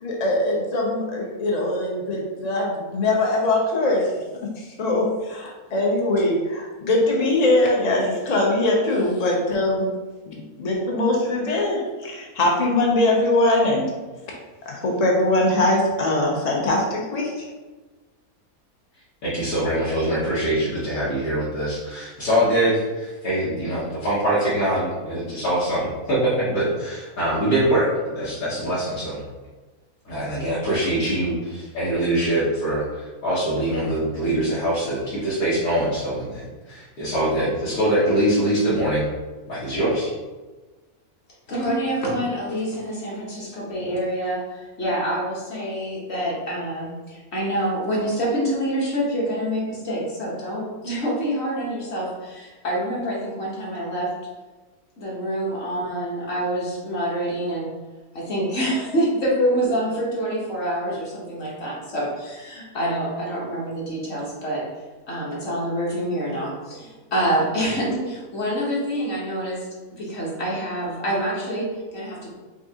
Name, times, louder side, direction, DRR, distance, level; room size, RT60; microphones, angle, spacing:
voice 1, 0.0-4.1 4.6-9.9 10.3-13.9 14.7-17.5, left 2 dB, 85° left, -1 dB, 0.3 m, -22 dB
voice 2, 19.2-29.2 30.0-39.1 39.5-40.1, right 1 dB, 65° left, -10 dB, 1.5 m, -23 dB
voice 3, 41.5-54.1 55.0-57.7 58.1-64.6 65.1-69.7 69.9-72.3, right 1 dB, 50° left, -4 dB, 1.1 m, -26 dB
5.1 x 2.4 x 2.8 m, 1.2 s
omnidirectional pair, 1.6 m